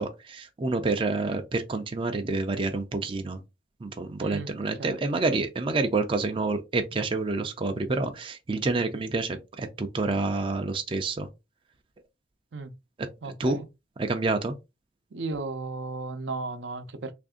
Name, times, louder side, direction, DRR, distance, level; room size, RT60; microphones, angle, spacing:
voice 1, 0.0-3.4 3.8-11.3 13.2-13.6 14.0-14.5, right 3 dB, 30° right, 0.4 m, -28 dB
voice 2, 4.2-4.5 4.8-5.2 12.5-12.7 13.2-13.7 15.1-17.1, right 3 dB, 75° right, 0.6 m, -35 dB
3.3 x 2.6 x 3.6 m
head